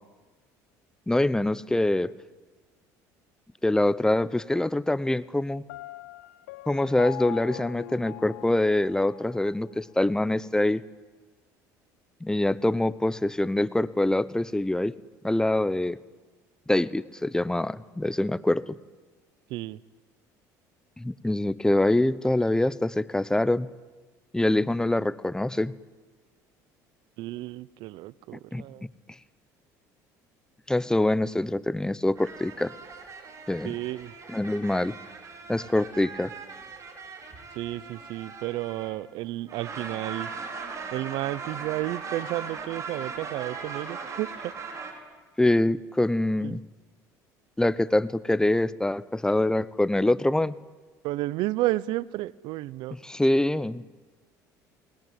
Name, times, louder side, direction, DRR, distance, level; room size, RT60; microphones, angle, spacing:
voice 1, 1.1-2.1 3.6-5.6 6.7-10.8 12.2-14.9 15.2-16.0 16.7-18.8 21.0-23.7 24.3-25.8 28.5-28.6 30.7-32.7 33.5-33.7 34.3-35.0 35.5-36.3 45.4-46.6 47.6-50.6 53.0-53.8, left 1 dB, 10° left, 18 dB, 0.9 m, -24 dB
Piano, 5.7-9.6, left 18 dB, 90° left, 0.8 m, -41 dB
voice 2, 19.5-19.8 27.2-28.8 33.6-34.1 37.5-40.3 40.9-44.5 46.4-46.6 51.0-53.0, right 17 dB, 70° right, 21 dB, 0.8 m, -32 dB
sound 1, 32.2-39.1 39.5-44.9, right 5 dB, 40° right, 5.7 m, -39 dB
29.5 x 20.5 x 9.2 m, 1.3 s
supercardioid pair, 85°, 8 cm